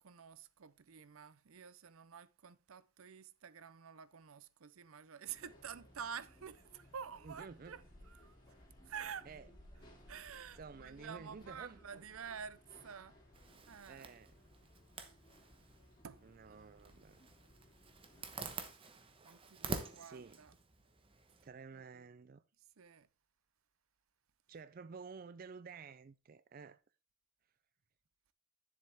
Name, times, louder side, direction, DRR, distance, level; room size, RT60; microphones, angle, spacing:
voice 1, 0.0-8.4 8.8-9.3 10.1-13.2 13.7-14.0 16.0-16.7 19.2-20.5 21.7-22.0 22.8-23.1, right 7 dB, 80° right, 0.6 m, -49 dB
sound 1, 5.3-18.4, left 1 dB, 25° left, 5.0 m, -62 dB
voice 2, 7.2-7.8 9.3-9.5 10.6-11.8 13.9-14.3 16.2-17.2 19.9-20.4 21.4-22.4 24.5-26.8, right 5 dB, 40° right, 0.4 m, -52 dB
Zipper (clothing), 13.3-21.5, right 3 dB, 25° right, 1.0 m, -48 dB
10.0 x 7.3 x 3.5 m
head